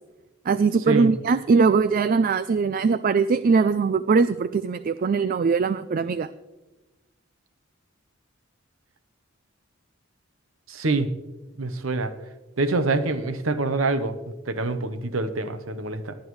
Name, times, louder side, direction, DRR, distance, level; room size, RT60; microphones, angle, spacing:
voice 1, 0.5-6.3, right 5 dB, 45° right, 14 dB, 0.3 m, -21 dB
voice 2, 10.7-11.1 11.6-12.1 12.6-14.2 14.5-16.2, right 3 dB, 85° right, 11 dB, 0.9 m, -25 dB
19.0 x 10.5 x 3.1 m, 1.1 s
head